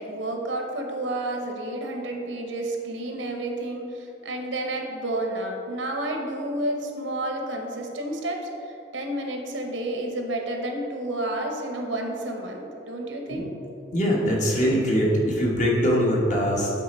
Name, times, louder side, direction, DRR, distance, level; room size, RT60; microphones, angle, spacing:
voice 1, 0.0-13.5, right 1 dB, 85° right, 2 dB, 0.9 m, -30 dB
voice 2, 13.9-16.7, equal, 40° left, -3 dB, 1.2 m, -22 dB
8.4 x 4.1 x 4.3 m, 2.8 s
head